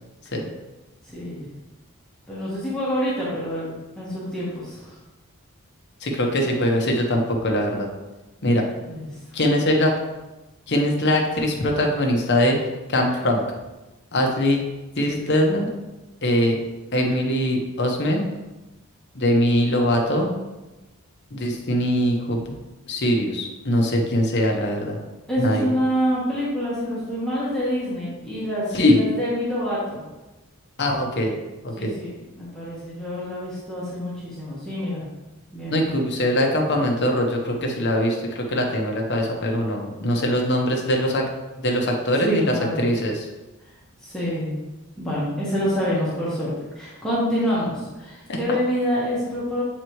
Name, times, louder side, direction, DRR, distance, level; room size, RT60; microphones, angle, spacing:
voice 1, 1.0-1.5 2.3-5.0 8.8-9.4 25.3-30.1 31.8-35.1 35.5-35.9 42.2-42.8 44.0-44.6 45.0-49.6, equal, 5° left, -9 dB, 1.3 m, -27 dB
voice 2, 6.0-7.9 8.4-8.6 9.3-9.9 10.7-12.6 12.9-13.4 14.1-14.6 15.0-15.7 16.2-16.6 16.9-18.3 19.1-20.3 21.3-22.4 22.9-25.0 25.4-25.7 28.7-29.0 30.8-31.4 31.6-31.9 35.7-41.2 41.6-43.3 48.3-48.4, left 1 dB, 50° left, 1 dB, 1.0 m, -22 dB
7.8 x 4.1 x 3.1 m, 1.1 s
head